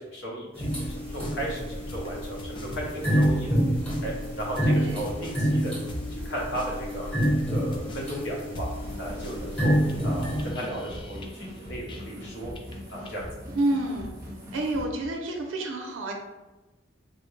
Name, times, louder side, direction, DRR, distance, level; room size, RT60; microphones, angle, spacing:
voice 1, 0.0-3.5 4.0-5.7 6.1-8.7 9.0-9.7 10.0-12.5 12.9-13.2, right 1 dB, 70° left, -4 dB, 0.8 m, -35 dB
sound 1, 0.6-12.3 12.6-13.2, left 1 dB, 25° left, 0.3 m, -40 dB
sound 2, 0.6-10.5, equal, 5° left, 1.0 m, -28 dB
voice 2, 4.6-5.2 13.5-14.1 14.5-16.1, right 1 dB, 90° right, 2 dB, 0.5 m, -29 dB
sound 3, 8.7-14.8, left 1 dB, 15° right, 0.6 m, -41 dB
3.6 x 2.1 x 3.1 m, 1.1 s
head